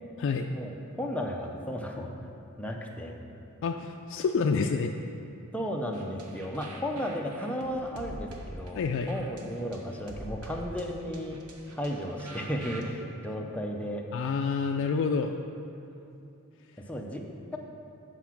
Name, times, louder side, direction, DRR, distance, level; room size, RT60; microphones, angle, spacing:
voice 1, 0.5-2.1 2.6-3.2 5.5-11.4 11.7-14.0 16.9-17.2, equal, 5° left, 1 dB, 0.6 m, -34 dB
voice 2, 3.6-4.9 8.8-9.1 14.1-15.4, left 5 dB, 60° left, 3 dB, 0.3 m, -28 dB
sound 1, 5.9-12.8, right 1 dB, 80° right, 0.9 m, -45 dB
8.0 x 4.6 x 6.0 m, 2.8 s
head